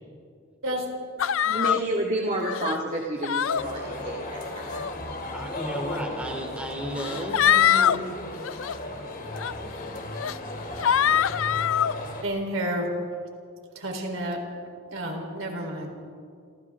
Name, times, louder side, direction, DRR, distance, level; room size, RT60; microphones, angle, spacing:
sound 1, 1.2-1.8 2.4-2.8 3.2-3.6 4.5-4.9 5.9-6.0 7.0-8.0 8.4-8.7 9.4-9.5 10.1-10.4 10.8-11.9, left 9 dB, 70° left, 0.4 m, -23 dB
voice 1, 1.4-4.8, right 1 dB, 35° right, -2 dB, 2.0 m, -30 dB
sound 2, 3.4-12.2, left 1 dB, 45° left, 3.2 m, -35 dB
voice 2, 5.3-8.2 8.9-9.0, equal, 5° right, 1 dB, 3.1 m, -34 dB
voice 3, 12.2-12.9 13.8-14.4 14.9-15.9, right 1 dB, 70° right, 2 dB, 4.0 m, -30 dB
29.0 x 26.5 x 3.7 m, 2.2 s
head